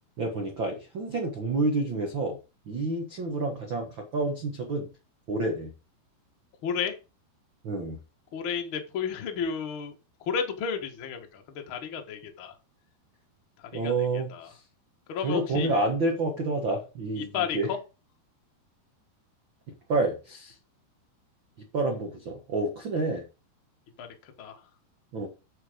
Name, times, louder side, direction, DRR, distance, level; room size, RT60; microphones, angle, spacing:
voice 1, 0.2-2.4 2.7-4.9 5.3-5.7 7.6-8.0 13.7-14.6 15.2-17.7 19.9-20.5 21.7-23.2 25.1-25.3, right 2 dB, 60° right, 2 dB, 1.3 m, -29 dB
voice 2, 6.6-7.0 8.3-9.9 10.2-12.6 13.6-14.5 15.1-15.7 17.2-17.8 24.0-24.6, left 6 dB, 90° left, 4 dB, 1.1 m, -33 dB
8.9 x 6.5 x 5.1 m, 0.30 s
omnidirectional pair, 4.9 m